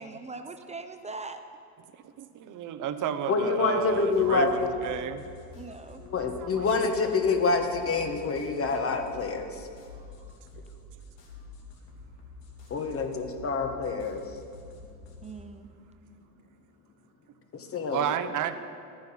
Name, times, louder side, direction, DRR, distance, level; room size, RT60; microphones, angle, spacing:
voice 1, 0.0-1.4 5.5-6.0 9.9-10.4 15.2-15.7, right 3 dB, 15° right, 8 dB, 0.5 m, -41 dB
voice 2, 2.0-5.3 6.5-6.6 17.9-18.6, right 9 dB, 45° right, 11 dB, 0.8 m, -32 dB
voice 3, 3.3-4.7 6.0-9.7 12.7-14.4 17.5-18.0, left 4 dB, 30° left, 5 dB, 1.3 m, -27 dB
sound 1, 3.9-15.4, left 3 dB, 75° left, 2.8 m, -48 dB
12.5 x 9.3 x 5.7 m, 2.4 s
supercardioid pair, 115°, 44 cm